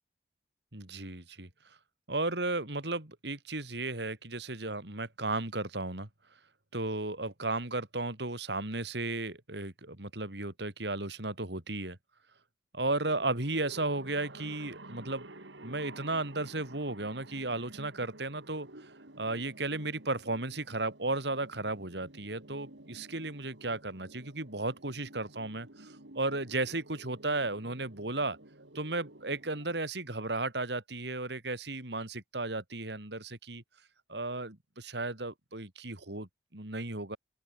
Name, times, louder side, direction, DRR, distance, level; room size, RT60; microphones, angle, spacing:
voice 1, 0.7-1.5 2.1-6.1 6.7-12.0 12.7-15.3 15.6-18.9 19.2-28.4 28.8-33.6 34.1-37.2, right 2 dB, 70° right, 3.4 m, -34 dB
sound 1, 12.8-29.8, right 1 dB, 90° right, 3.7 m, -52 dB
open air
head